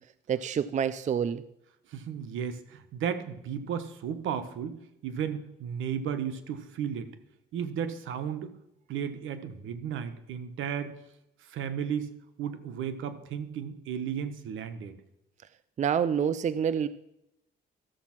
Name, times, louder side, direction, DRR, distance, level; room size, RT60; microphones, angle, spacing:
voice 1, 0.3-1.4 15.8-16.9, right 8 dB, 35° right, 15 dB, 0.4 m, -27 dB
voice 2, 1.9-4.8 5.0-7.1 7.5-8.5 8.9-10.9 11.4-12.1 12.4-14.9, right 8 dB, 80° right, 10 dB, 1.2 m, -34 dB
13.0 x 7.2 x 5.9 m, 0.83 s
cardioid pair, 90°, 20 cm